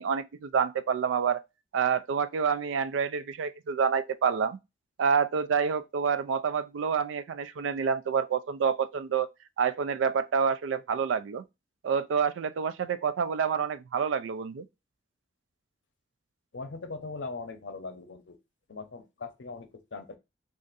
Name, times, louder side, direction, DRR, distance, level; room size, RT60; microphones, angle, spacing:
voice 1, 0.0-1.4 1.7-4.6 5.0-9.3 9.6-11.4 11.8-14.7, right 6 dB, 85° right, 0.3 m, -28 dB
voice 2, 16.5-18.4 18.7-20.2, left 3 dB, 75° left, 0.6 m, -40 dB
2.5 x 2.5 x 3.8 m
head